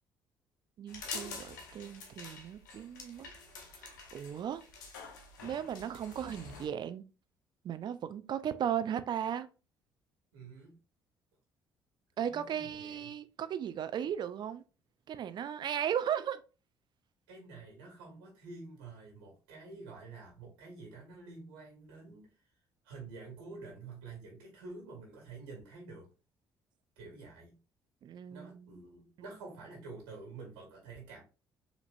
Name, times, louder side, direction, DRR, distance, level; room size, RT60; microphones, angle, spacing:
voice 1, 0.8-3.3 3.8-4.6 5.4-7.0 7.6-9.5 12.2-14.6 15.1-16.4 28.0-28.7, right 9 dB, 50° right, 0.4 m, -36 dB
sound 1, 0.9-6.7, left 4 dB, 90° left, 0.7 m, -47 dB
voice 2, 10.3-10.7 12.3-13.2 17.3-22.3 22.8-26.1 27.0-27.5 28.3-31.2, right 3 dB, 80° right, 1.7 m, -49 dB
4.2 x 2.9 x 2.5 m
hypercardioid pair, 50°, 10 cm